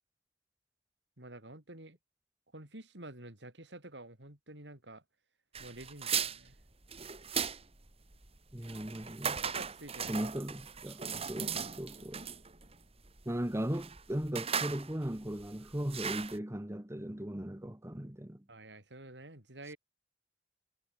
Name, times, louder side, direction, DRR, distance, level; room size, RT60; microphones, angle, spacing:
voice 1, 1.2-2.0 2.5-5.0 5.6-6.6 9.4-10.3 18.5-19.8, right 1 dB, 85° right, 6.2 m, -49 dB
sound 1, 5.5-16.4, right 7 dB, 35° right, 2.4 m, -38 dB
voice 2, 8.5-9.4 10.1-11.0 11.3-12.2 13.2-18.4, equal, 15° right, 1.4 m, -37 dB
head